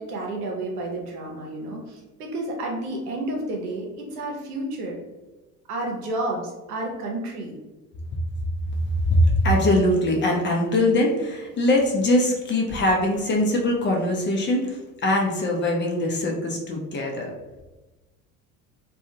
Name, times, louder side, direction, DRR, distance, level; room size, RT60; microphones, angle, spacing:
voice 1, 0.0-5.0 5.7-7.5, right 2 dB, 80° right, 0 dB, 0.8 m, -31 dB
voice 2, 8.7-17.3, left 1 dB, 25° left, 0 dB, 0.6 m, -22 dB
2.5 x 2.3 x 2.8 m, 1.1 s
hypercardioid pair, 65°, 45 cm